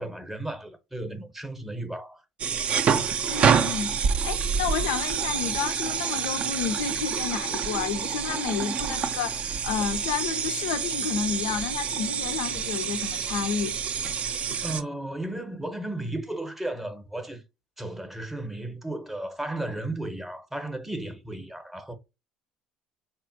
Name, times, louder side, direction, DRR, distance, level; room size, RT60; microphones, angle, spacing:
voice 1, 0.0-2.2 14.6-17.4 17.8-21.9, right 1 dB, 10° right, 0.7 m, -34 dB
sound 1, 2.4-14.8, right 6 dB, 45° right, 0.3 m, -27 dB
voice 2, 3.3-13.8 14.5-14.6, left 7 dB, 70° left, 0.3 m, -31 dB
2.9 x 2.4 x 2.5 m
hypercardioid pair, 60°, 3 cm